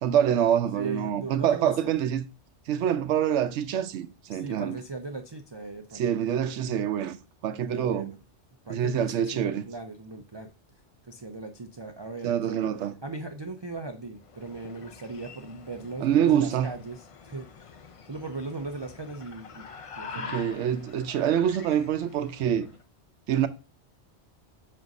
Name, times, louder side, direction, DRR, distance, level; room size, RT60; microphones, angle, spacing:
voice 1, 0.0-2.2 2.7-4.8 5.9-7.2 7.4-8.1 8.7-9.6 12.2-12.9 16.0-16.7 20.2-22.7 23.3-23.5, right 9 dB, 85° right, 0.9 m, -26 dB
voice 2, 0.7-1.9 4.3-6.5 7.7-8.2 8.7-10.5 11.1-12.6 13.0-17.7 18.1-19.6 19.9-20.3, right 3 dB, 40° right, 0.3 m, -38 dB
sound 1, 14.2-22.8, left 5 dB, 55° left, 0.3 m, -45 dB
7.5 x 2.6 x 5.2 m
omnidirectional pair, 1.2 m